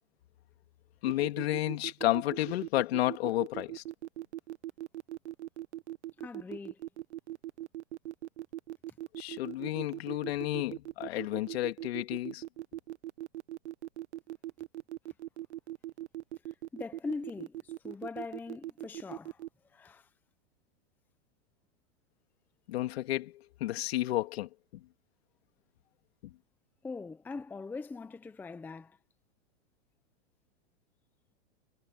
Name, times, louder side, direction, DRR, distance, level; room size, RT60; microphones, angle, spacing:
voice 1, 1.0-3.8 9.2-12.4 22.7-24.8 26.2-26.3, left 15 dB, 65° left, 2.8 m, -32 dB
sound 1, 1.1-19.5, right 14 dB, 85° right, 1.2 m, -40 dB
voice 2, 6.2-6.8 16.7-19.4 19.7-20.1 26.8-29.0, left 4 dB, 5° left, 0.7 m, -41 dB
supercardioid pair, 150°, 33 cm